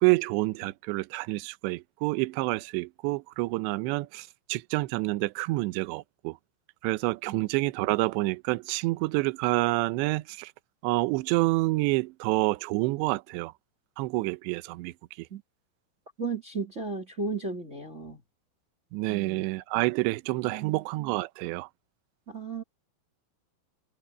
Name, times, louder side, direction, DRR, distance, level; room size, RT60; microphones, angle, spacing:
voice 1, 0.0-6.4 6.8-10.5 10.8-13.5 14.0-15.3 18.9-21.7, right 22 dB, 80° right, 2.6 m, -28 dB
voice 2, 16.2-18.2 20.4-20.8 22.3-22.6, right 4 dB, 25° right, 1.8 m, -35 dB
omnidirectional pair, 5.8 m